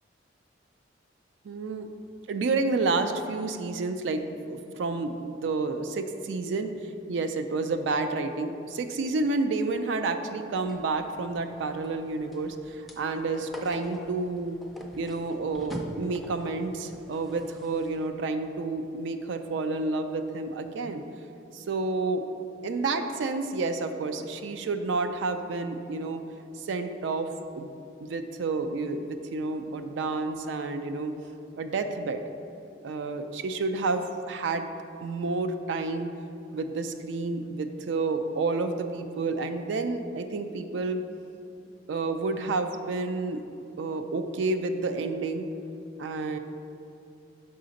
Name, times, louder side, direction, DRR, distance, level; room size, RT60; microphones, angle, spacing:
voice 1, 1.4-1.9 2.3-6.7 7.1-14.6 15.0-21.0 21.5-22.2 22.6-26.2 26.6-27.3 27.6-27.7 28.0-31.2 31.6-32.2 32.8-34.7 35.0-36.1 36.5-41.0 41.9-43.4 43.8-45.5 46.0-46.4, right 3 dB, 75° right, 8 dB, 0.4 m, -30 dB
sound 1, 10.6-18.1, equal, ahead, 0.4 m, -45 dB
5.7 x 3.8 x 5.1 m, 2.7 s
head